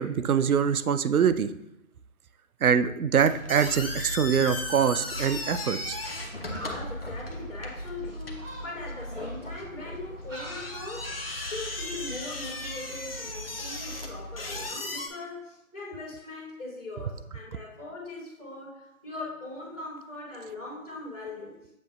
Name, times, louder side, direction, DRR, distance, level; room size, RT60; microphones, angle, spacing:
voice 1, 0.0-1.5 2.6-6.0, right 7 dB, 80° right, 12 dB, 0.6 m, -24 dB
sound 1, 3.2-15.1, left 2 dB, 45° left, 0.7 m, -37 dB
Gull seagull, 3.2-14.7, equal, 60° right, 2.4 m, -41 dB
voice 2, 6.6-21.5, left 2 dB, 10° left, -19 dB, 1.0 m, -40 dB
7.3 x 5.7 x 2.3 m, 0.85 s
figure-of-eight pair, 170°, 43 cm